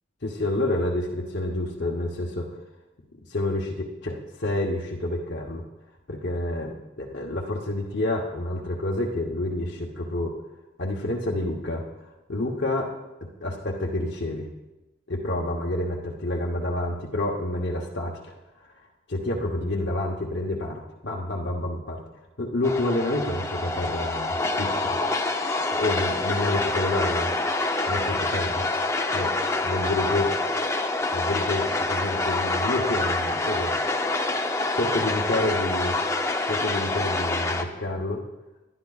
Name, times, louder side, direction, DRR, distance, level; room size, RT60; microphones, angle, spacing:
voice 1, 0.2-2.5 3.3-5.6 6.1-10.4 10.8-11.9 12.3-12.9 13.4-14.5 15.1-18.3 19.1-22.0 22.4-25.0 25.8-27.3 27.9-29.3 29.6-30.3 31.1-33.7 34.7-36.0 36.5-38.2, left 1 dB, 60° left, -2 dB, 1.0 m, -28 dB
sound 1, 22.6-37.6, left 2 dB, 15° left, 0.6 m, -26 dB
19.0 x 11.0 x 2.4 m, 1.1 s
head